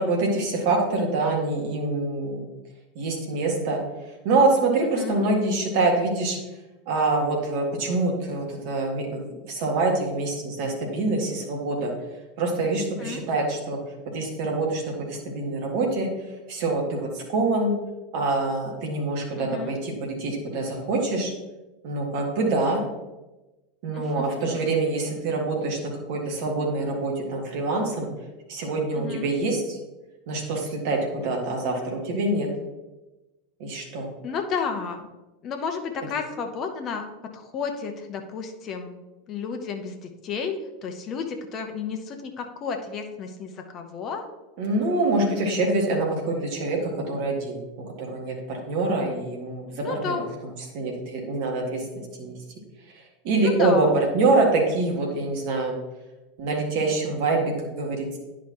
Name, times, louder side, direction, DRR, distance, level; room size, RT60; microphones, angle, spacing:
voice 1, 0.0-2.5 3.0-3.8 4.2-6.4 6.9-11.9 12.4-13.8 14.1-16.1 16.5-17.7 18.1-21.3 21.8-22.8 23.8-25.8 26.1-28.1 28.5-29.8 30.3-32.5 33.6-34.1 44.6-47.6 48.0-50.2 50.7-51.8 52.2-52.3 53.2-55.8 56.4-58.2, right 2 dB, 55° right, 0 dB, 1.8 m, -25 dB
voice 2, 19.4-19.7 23.9-24.6 28.9-29.3 34.2-35.1 35.4-37.0 37.3-39.0 39.3-44.3 49.8-50.4 53.4-53.9, left 5 dB, 35° left, 5 dB, 0.9 m, -32 dB
10.5 x 5.2 x 2.9 m, 1.1 s
figure-of-eight pair, 80°, 0 cm